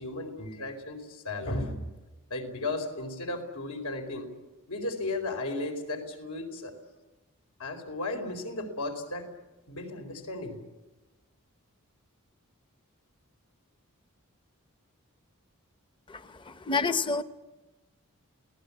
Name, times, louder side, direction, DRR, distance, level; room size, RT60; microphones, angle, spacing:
voice 1, 0.0-1.9 2.3-4.3 4.7-6.7 7.6-9.3 9.7-10.6, left 2 dB, 85° left, 4 dB, 4.5 m, -35 dB
voice 2, 16.5-17.2, left 4 dB, 20° left, 11 dB, 0.8 m, -28 dB
29.0 x 18.5 x 8.6 m, 1.1 s
head